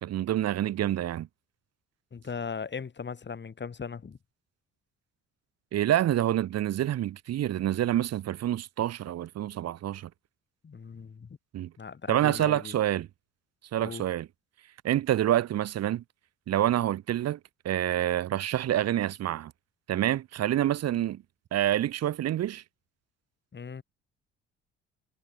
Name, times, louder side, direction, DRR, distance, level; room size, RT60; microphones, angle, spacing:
voice 1, 0.0-1.3 5.7-10.1 11.5-11.7 12.1-13.1 13.7-14.3 14.8-16.0 16.5-17.4 17.6-19.5 19.9-21.2 21.5-22.6, right 12 dB, 55° right, 1.9 m, -27 dB
voice 2, 2.1-4.2 10.6-11.3 11.8-12.7 13.8-14.0 23.5-23.8, left 5 dB, 35° left, 6.4 m, -38 dB
hypercardioid pair, 50°, 30 cm